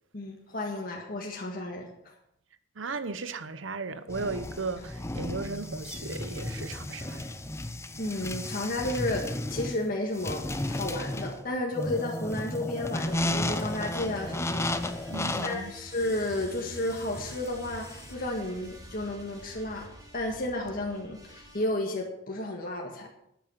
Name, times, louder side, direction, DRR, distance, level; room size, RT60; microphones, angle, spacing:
voice 1, 0.1-2.1 8.0-15.1 15.4-19.9 20.1-23.1, left 1 dB, 50° left, 1.8 m, -32 dB
voice 2, 2.8-7.3 15.1-15.8, right 3 dB, 80° right, 0.9 m, -36 dB
sound 1, 4.1-18.1, left 1 dB, 15° left, 0.7 m, -34 dB
sound 2, 13.0-21.6, equal, 20° right, 3.4 m, -47 dB
12.0 x 9.3 x 5.9 m
head